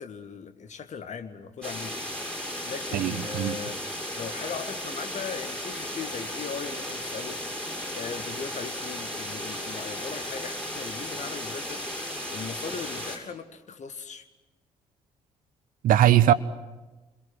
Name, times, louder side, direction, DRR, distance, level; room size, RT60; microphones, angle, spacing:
voice 1, 0.0-2.3 2.6-3.8 4.2-7.6 7.9-14.2, left 6 dB, 45° left, 1.8 m, -39 dB
sound 1, 1.6-13.2, left 1 dB, 5° left, 6.7 m, -35 dB
voice 2, 2.9-3.6 15.8-16.3, right 12 dB, 55° right, 1.0 m, -20 dB
29.5 x 22.0 x 6.3 m
figure-of-eight pair, 45°, 17 cm